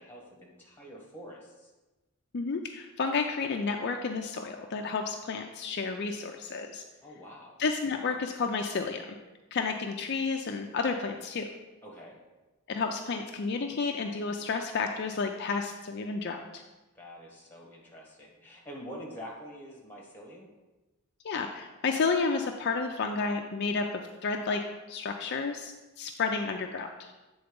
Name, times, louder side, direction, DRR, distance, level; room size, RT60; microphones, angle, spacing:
voice 1, 0.0-1.7 7.0-7.6 11.8-12.2 16.9-20.5, equal, 10° left, -2 dB, 1.5 m, -46 dB
voice 2, 2.3-6.8 7.6-9.0 9.5-11.5 12.7-16.6 21.2-24.6 24.9-27.1, left 4 dB, 50° left, 3 dB, 0.4 m, -31 dB
7.9 x 3.9 x 5.2 m, 1.1 s
head